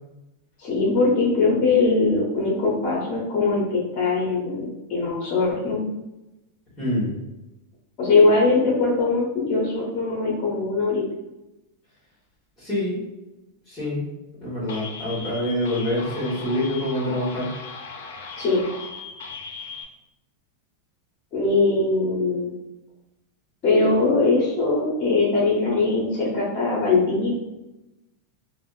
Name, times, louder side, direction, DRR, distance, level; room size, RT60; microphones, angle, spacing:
voice 1, 0.6-5.9 8.0-11.0 18.4-18.7 21.3-22.5 23.6-27.3, left 3 dB, 30° left, -4 dB, 0.7 m, -21 dB
voice 2, 6.8-7.2 12.6-13.0 13.7-14.0 14.4-17.5, left 1 dB, 10° left, -11 dB, 1.3 m, -26 dB
sound 1, 14.7-19.8, left 5 dB, 75° left, 0.5 m, -38 dB
3.4 x 2.0 x 2.4 m, 0.96 s
supercardioid pair, 155°, 0 cm